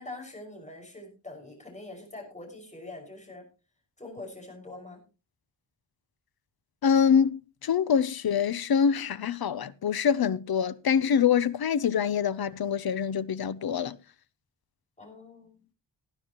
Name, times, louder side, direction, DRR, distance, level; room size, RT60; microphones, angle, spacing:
voice 1, 0.0-3.5 4.0-5.0 15.0-15.6, left 2 dB, 15° left, 6.0 m, -44 dB
voice 2, 6.8-14.0, left 7 dB, 60° left, 0.8 m, -25 dB
19.0 x 11.0 x 3.0 m
wide cardioid pair, 135°, 43 cm